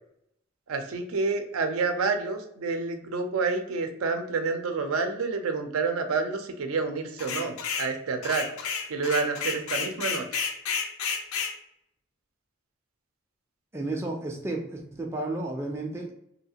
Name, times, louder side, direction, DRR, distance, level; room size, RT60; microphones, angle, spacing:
voice 1, 0.7-8.5 8.9-10.3, right 4 dB, 90° right, 6 dB, 0.5 m, -28 dB
sound 1, 7.2-7.9 8.2-11.5, left 6 dB, 85° left, 0.4 m, -31 dB
voice 2, 13.7-16.1, right 2 dB, 10° right, 0 dB, 0.3 m, -32 dB
2.8 x 2.4 x 2.7 m, 0.77 s
head